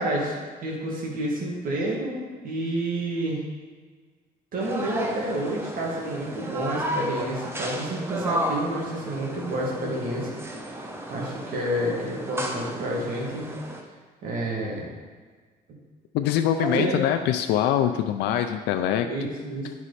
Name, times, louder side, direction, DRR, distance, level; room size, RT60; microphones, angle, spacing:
voice 1, 0.0-2.2 2.4-3.4 4.5-10.3 11.1-13.6 14.2-14.9 16.6-17.0 19.0-19.7, right 1 dB, 55° right, -3 dB, 2.3 m, -29 dB
sound 1, 4.6-13.8, right 1 dB, 15° right, 0.9 m, -34 dB
voice 2, 16.1-19.1 19.6-19.7, left 10 dB, 85° left, 7 dB, 0.5 m, -24 dB
10.0 x 4.8 x 4.2 m, 1.5 s
cardioid pair, 110°, 17 cm